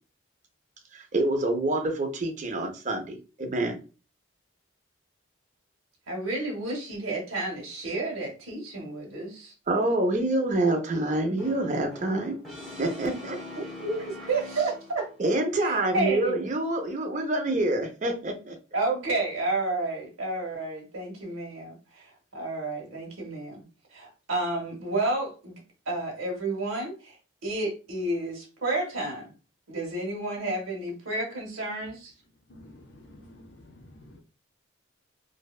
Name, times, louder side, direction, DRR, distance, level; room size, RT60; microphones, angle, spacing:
voice 1, 0.9-3.8 9.7-12.4 12.8-13.4 15.2-18.6, right 2 dB, 35° right, 0.4 m, -27 dB
voice 2, 6.1-9.5 13.6-15.1 15.6-16.5 18.7-23.6 23.9-27.2 27.4-29.3 29.7-32.1, right 2 dB, 85° right, 0.8 m, -31 dB
Brass instrument, 11.4-15.2, left 2 dB, ahead, 0.7 m, -43 dB
voice 3, 32.5-34.2, left 1 dB, 55° left, 0.5 m, -50 dB
2.6 x 2.1 x 2.3 m
head